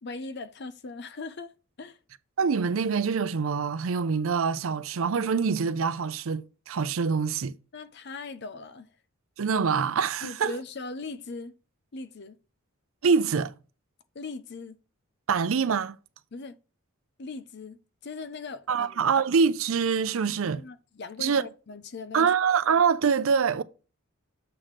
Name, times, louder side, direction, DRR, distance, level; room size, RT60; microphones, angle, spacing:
voice 1, 0.0-1.5 1.8-2.0 7.7-8.9 10.2-11.5 11.9-12.4 14.1-14.8 16.3-16.6 17.2-19.0 20.2-22.3, left 3 dB, 50° left, 0.6 m, -39 dB
voice 2, 2.4-7.5 9.4-10.5 13.0-13.5 15.3-16.0 18.7-20.6 21.2-21.5 22.1-23.6, right 6 dB, 75° right, 0.5 m, -25 dB
7.6 x 3.2 x 5.8 m
head